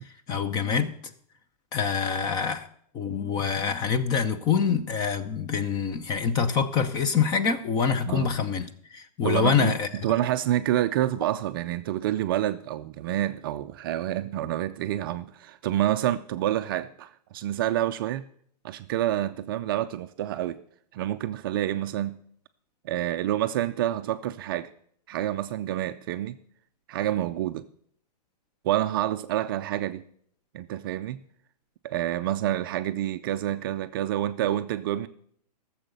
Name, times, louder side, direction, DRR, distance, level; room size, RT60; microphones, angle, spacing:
voice 1, 0.3-0.9 1.7-2.7 2.9-8.7 8.9-9.9, left 6 dB, 20° left, 11 dB, 0.7 m, -25 dB
voice 2, 9.2-18.2 18.6-20.6 20.9-22.2 22.8-24.7 25.1-26.4 26.9-27.6 28.6-30.0 30.5-31.2 31.8-35.1, right 12 dB, 35° right, 10 dB, 0.4 m, -28 dB
14.0 x 7.2 x 6.7 m, 0.63 s
hypercardioid pair, 150°, 21 cm